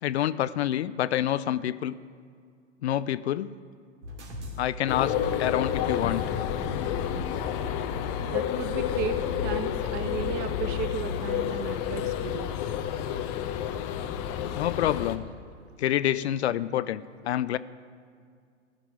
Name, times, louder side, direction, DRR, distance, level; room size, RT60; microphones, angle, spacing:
voice 1, 0.0-2.0 2.8-3.5 4.6-6.2 14.6-15.2 15.8-17.6, left 12 dB, 60° left, 16 dB, 0.5 m, -27 dB
sound 1, 4.0-10.1, left 1 dB, 65° right, 2.8 m, -43 dB
sound 2, 4.9-15.2, left 9 dB, 30° left, 0.8 m, -30 dB
voice 2, 8.3-12.5, right 7 dB, 25° right, 11 dB, 0.7 m, -35 dB
14.0 x 6.0 x 8.5 m, 2.2 s
hypercardioid pair, 115°, 37 cm